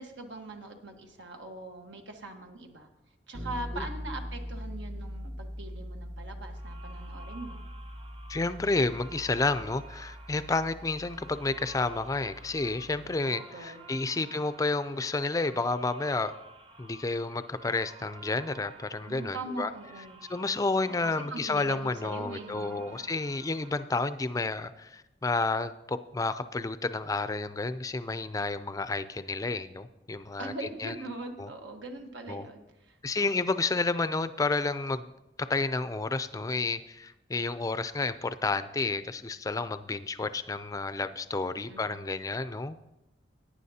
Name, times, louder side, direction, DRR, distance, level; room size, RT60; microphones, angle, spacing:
voice 1, 0.0-2.9 3.3-7.7 13.0-13.8 14.2-14.3 19.1-20.2 20.9-23.1 30.4-33.6 41.6-41.9, right 2 dB, 90° right, 4 dB, 1.3 m, -42 dB
sound 1, 3.3-13.2, equal, 65° right, 1.2 m, -42 dB
sound 2, 6.5-23.8, right 2 dB, 30° right, 0.7 m, -52 dB
voice 2, 8.3-16.4 16.8-19.7 20.3-30.5 30.8-30.9 31.4-31.5 32.3-32.4 33.0-35.1 35.5-42.8, left 3 dB, 20° left, 12 dB, 0.4 m, -30 dB
17.5 x 9.9 x 2.8 m, 0.95 s
head